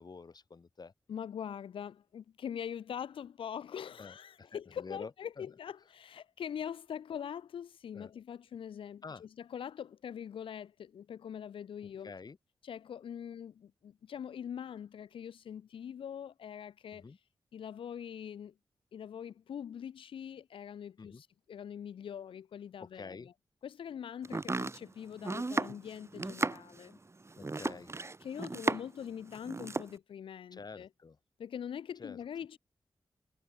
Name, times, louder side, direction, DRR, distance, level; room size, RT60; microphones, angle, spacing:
voice 1, 0.0-0.9 4.0-5.1 5.4-5.5 7.9-8.1 9.0-9.2 12.0-12.4 16.9-17.2 21.0-21.2 22.8-23.3 24.3-24.4 27.4-28.0 30.5-31.2 32.0-32.2, left 4 dB, 50° left, 1.7 m, -48 dB
voice 2, 1.1-12.1 12.6-17.1 17.5-18.5 18.9-23.3 23.6-27.0 28.2-30.9 31.4-32.6, left 8 dB, 90° left, 1.1 m, -43 dB
Domestic sounds home sounds, 24.2-29.0 29.3-29.9, right 3 dB, 30° right, 1.2 m, -35 dB
cardioid pair, 55°, 9 cm